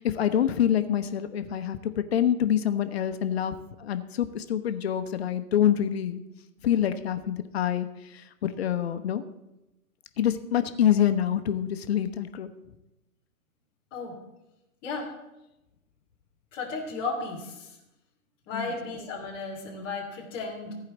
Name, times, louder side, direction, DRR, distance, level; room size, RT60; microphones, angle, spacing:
voice 1, 0.0-6.2 6.6-9.2 10.2-12.5 18.5-18.7, left 10 dB, 45° left, 10 dB, 0.8 m, -26 dB
voice 2, 16.5-17.7 18.5-20.7, left 3 dB, 5° left, -6 dB, 0.4 m, -34 dB
14.5 x 4.9 x 7.1 m, 0.95 s
figure-of-eight pair, 115°, 43 cm